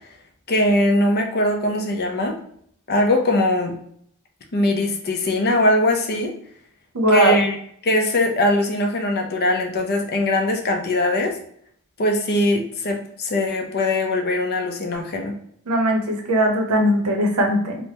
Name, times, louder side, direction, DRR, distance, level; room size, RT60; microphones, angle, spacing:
voice 1, 0.5-2.3 2.9-3.8 4.5-6.3 7.1-7.6 7.8-11.4 12.0-15.3, left 1 dB, 45° left, 3 dB, 0.5 m, -21 dB
voice 2, 6.9-7.4 15.7-17.8, equal, 90° right, 3 dB, 0.7 m, -19 dB
3.3 x 2.1 x 2.7 m, 0.65 s
head